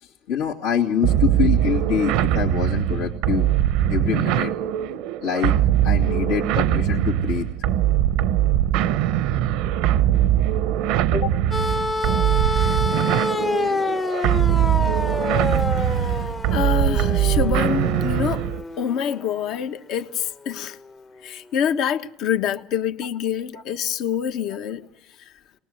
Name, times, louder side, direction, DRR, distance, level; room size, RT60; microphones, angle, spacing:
voice 1, 0.0-3.5 3.9-4.5 5.2-5.5 5.8-7.5 11.1-11.3 23.5-23.6 24.5-24.6, left 8 dB, 80° left, 2.3 m, -25 dB
sound 1, 1.0-18.6, right 12 dB, 70° right, 0.8 m, -21 dB
sound 2, 11.5-19.6 20.9-21.0, left 3 dB, 15° left, 0.8 m, -27 dB
voice 2, 15.8-16.2 16.5-18.5 18.8-20.8 21.2-24.9, left 8 dB, 60° left, 1.2 m, -26 dB
22.5 x 19.5 x 7.9 m
supercardioid pair, 115°, 0 cm